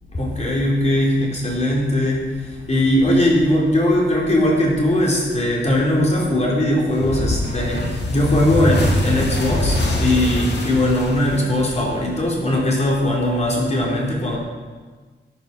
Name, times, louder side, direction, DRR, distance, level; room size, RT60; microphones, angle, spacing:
voice 1, 0.1-2.2 2.7-14.4, left 1 dB, 35° left, -4 dB, 4.3 m, -19 dB
sound 1, 7.0-12.1, left 1 dB, 65° left, 2.7 m, -23 dB
13.5 x 9.8 x 6.2 m, 1.4 s
wide cardioid pair, 105°, 20 cm